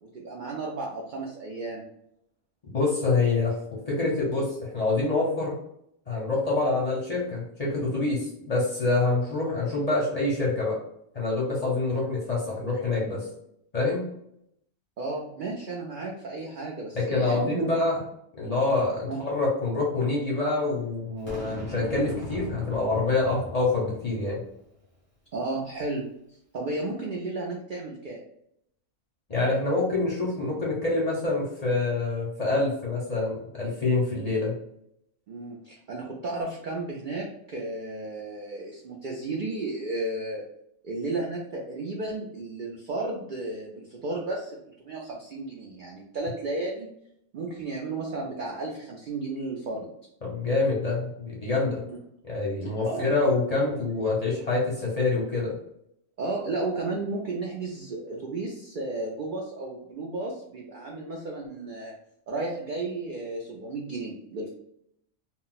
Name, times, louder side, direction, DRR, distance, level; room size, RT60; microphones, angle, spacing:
voice 1, 0.0-1.9 15.0-17.7 19.1-19.2 25.3-26.0 26.5-28.2 35.3-40.4 40.8-46.9 47.3-49.9 51.9-52.0 52.8-53.1 56.2-61.9 62.3-64.5, right 2 dB, 85° right, -1 dB, 0.4 m, -33 dB
voice 2, 2.7-5.5 6.1-10.8 11.1-13.3 13.7-14.0 17.0-18.0 18.4-24.4 29.3-34.5 50.2-51.8 52.2-55.6, left 3 dB, 40° left, -4 dB, 0.6 m, -26 dB
Boom, 21.3-24.6, left 1 dB, 35° right, 0.7 m, -39 dB
2.3 x 2.1 x 3.9 m, 0.74 s
omnidirectional pair, 1.4 m